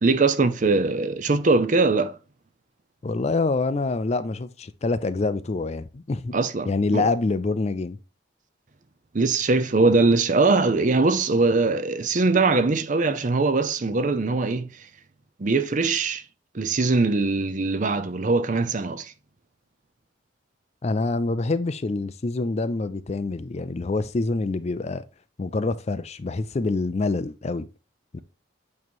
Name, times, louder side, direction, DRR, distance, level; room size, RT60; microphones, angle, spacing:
voice 1, 0.0-2.2 6.3-7.1 9.1-14.7 15.4-16.2 16.5-19.1, right 3 dB, 40° right, 0.6 m, -21 dB
voice 2, 3.0-6.4 6.7-8.0 20.8-25.0 25.4-27.7 28.1-28.2, left 3 dB, 35° left, 0.4 m, -26 dB
8.4 x 3.1 x 4.4 m
head